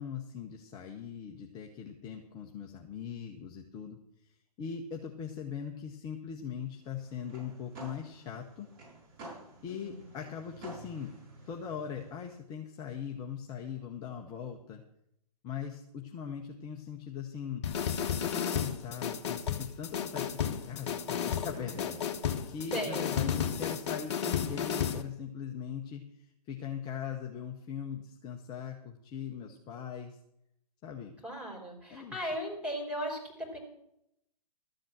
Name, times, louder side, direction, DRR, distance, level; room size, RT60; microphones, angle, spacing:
voice 1, 0.0-4.0 4.6-8.7 9.6-11.1 11.5-14.8 15.4-17.6 18.2-22.0 22.5-30.2 30.8-31.1 31.9-32.2, left 7 dB, 20° left, 2 dB, 1.0 m, -40 dB
sound 1, 6.8-12.3, right 2 dB, 30° right, 6.7 m, -50 dB
voice 2, 9.7-10.0 22.7-23.1 31.2-33.6, equal, 5° right, -3 dB, 3.9 m, -37 dB
sound 2, 17.6-25.0, left 8 dB, 45° left, 1.2 m, -33 dB
13.5 x 7.7 x 7.4 m, 0.77 s
figure-of-eight pair, 125°, 20 cm